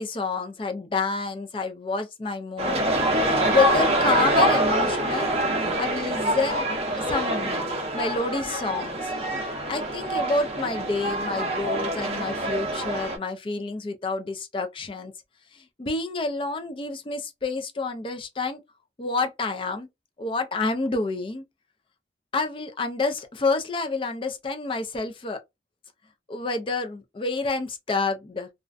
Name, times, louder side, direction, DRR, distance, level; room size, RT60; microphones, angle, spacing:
voice 1, 0.0-2.8 3.1-5.3 5.8-9.1 9.5-15.1 15.5-18.6 19.0-19.9 20.2-21.4 22.3-25.4 26.3-28.5, left 3 dB, 30° left, 0.3 m, -28 dB
sound 1, 2.6-13.2, right 1 dB, 35° right, 0.5 m, -25 dB
2.4 x 2.1 x 2.4 m
head